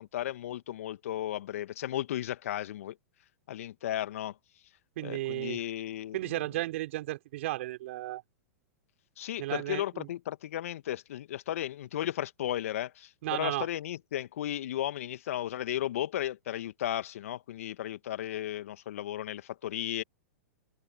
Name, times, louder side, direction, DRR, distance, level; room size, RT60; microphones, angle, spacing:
voice 1, 0.0-3.0 3.5-4.4 5.0-6.3 9.2-20.0, left 12 dB, 65° left, 1.6 m, -35 dB
voice 2, 5.0-5.6 6.1-8.2 9.4-10.1 13.2-13.7, right 17 dB, 55° right, 4.7 m, -34 dB
open air
hypercardioid pair, 105°, 8 cm